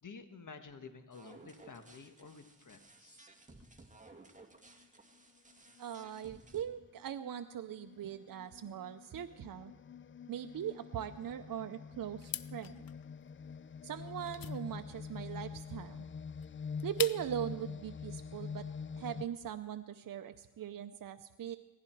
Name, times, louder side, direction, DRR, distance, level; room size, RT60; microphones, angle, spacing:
voice 1, 0.0-3.2, left 5 dB, 65° left, 8 dB, 1.6 m, -51 dB
sound 1, 1.1-6.6, right 2 dB, 20° right, 2.0 m, -58 dB
sound 2, 4.7-4.9 5.5-19.2, left 6 dB, 35° left, 0.4 m, -46 dB
voice 2, 5.8-9.7 10.3-12.8 13.8-16.0 16.8-18.7 19.0-21.6, right 10 dB, 80° right, 8 dB, 0.6 m, -40 dB
sound 3, 12.2-17.5, left 10 dB, 85° left, 0.6 m, -45 dB
18.5 x 15.5 x 4.6 m, 1.3 s
cardioid pair, 60°, 34 cm